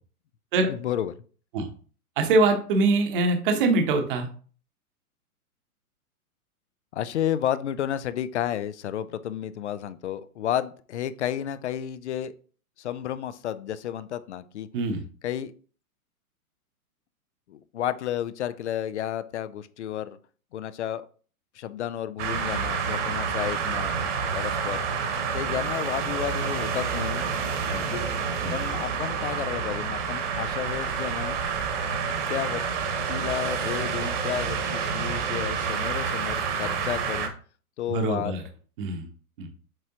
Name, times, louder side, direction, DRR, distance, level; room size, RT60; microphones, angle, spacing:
voice 1, 0.7-1.1 6.9-12.3 12.8-14.7 15.2-15.5 17.5-20.2 20.5-21.0 21.6-24.0 24.3-24.8 25.3-27.3 27.7-28.0 28.5-31.4 32.3-32.6 33.1-37.3 37.8-38.3, left 11 dB, 50° left, 15 dB, 0.6 m, -31 dB
voice 2, 2.2-4.3 14.7-15.0 27.7-28.1 28.4-28.6 37.9-38.4 38.8-39.1 39.4-39.5, right 3 dB, 35° right, 4 dB, 1.1 m, -23 dB
sound 1, 22.2-37.3, right 6 dB, 50° right, 1.5 m, -28 dB
7.6 x 4.8 x 2.9 m, 0.41 s
hypercardioid pair, 160°, 45 cm